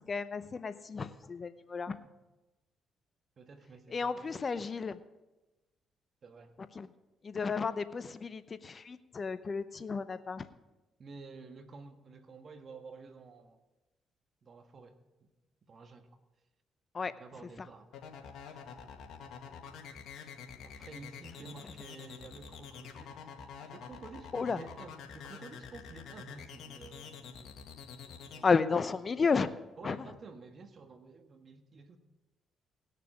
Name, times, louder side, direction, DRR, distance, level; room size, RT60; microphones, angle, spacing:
voice 1, 0.0-2.0 3.9-5.0 6.7-6.9 7.2-10.5 16.9-17.1 24.3-24.6 28.4-29.5 29.8-30.1, left 5 dB, 40° left, 13 dB, 0.7 m, -32 dB
voice 2, 3.4-4.5 6.2-6.6 11.0-13.6 14.4-15.3 15.6-16.1 17.1-18.0 20.6-23.3 23.6-27.3 28.3-28.6 29.8-32.0, right 4 dB, 50° right, 7 dB, 1.5 m, -51 dB
sound 1, 17.9-28.4, left 7 dB, 75° left, 1.9 m, -47 dB
19.5 x 6.7 x 5.0 m, 1.1 s
supercardioid pair, 65°, 0 cm